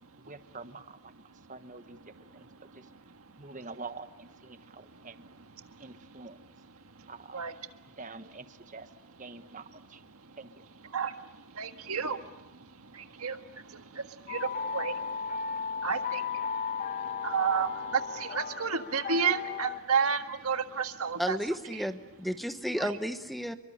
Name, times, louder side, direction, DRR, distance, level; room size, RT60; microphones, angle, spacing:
voice 1, 0.2-1.1 1.5-2.9 3.4-5.2 5.8-6.4 7.1-7.4 7.9-8.9 9.2-10.0 10.4-10.6, right 3 dB, 35° right, 9 dB, 1.3 m, -46 dB
voice 2, 2.2-3.5 4.5-5.1 5.6-5.9 6.8-7.5 10.1-10.4 10.9-21.4 21.7-21.8 22.8-22.9, right 6 dB, 80° right, 7 dB, 1.6 m, -33 dB
sound 1, 14.3-19.8, left 6 dB, 35° left, 1.0 m, -35 dB
voice 3, 21.2-23.5, equal, ahead, 9 dB, 0.9 m, -32 dB
28.5 x 23.5 x 8.7 m, 1.0 s
head